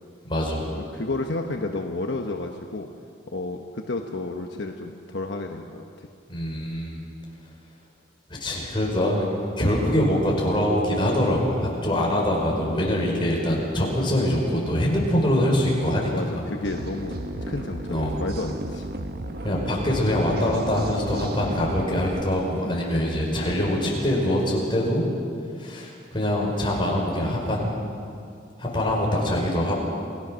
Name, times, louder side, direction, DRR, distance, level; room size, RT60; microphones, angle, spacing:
voice 1, 0.2-0.6 6.3-7.0 8.3-9.3 9.6-16.1 16.4-16.5 17.9-18.2 19.4-25.1 25.6-27.7 28.6-29.7, left 1 dB, 25° left, -2 dB, 5.0 m, -24 dB
voice 2, 0.7-2.9 3.3-6.1 12.8-13.2 16.1-18.9 22.6-22.8 24.7-24.9, left 2 dB, 65° left, 3 dB, 1.1 m, -32 dB
sound 1, 16.6-22.2, right 1 dB, 55° right, 1.2 m, -34 dB
28.0 x 17.5 x 6.3 m, 2.4 s
head